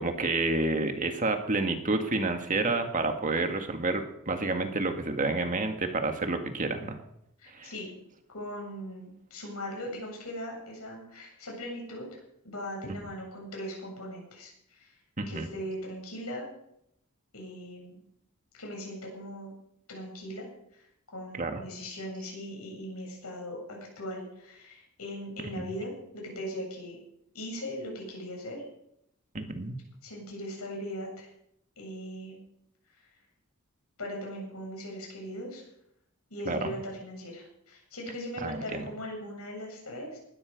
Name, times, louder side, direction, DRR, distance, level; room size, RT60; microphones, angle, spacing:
voice 1, 0.0-7.0 7.5-7.7 15.2-15.5 21.4-21.6 25.6-25.7 29.3-29.8 36.5-36.8 38.4-38.9, right 2 dB, 35° right, 6 dB, 1.9 m, -29 dB
voice 2, 7.4-7.9 8.3-12.1 12.4-14.9 15.3-16.5 17.3-18.0 18.5-19.5 19.9-20.5 20.7-20.8 21.1-27.0 27.3-28.6 30.0-31.3 31.8-32.4 34.0-35.6 36.3-40.2, equal, 80° left, 0 dB, 7.8 m, -39 dB
20.0 x 12.5 x 5.3 m, 0.77 s
head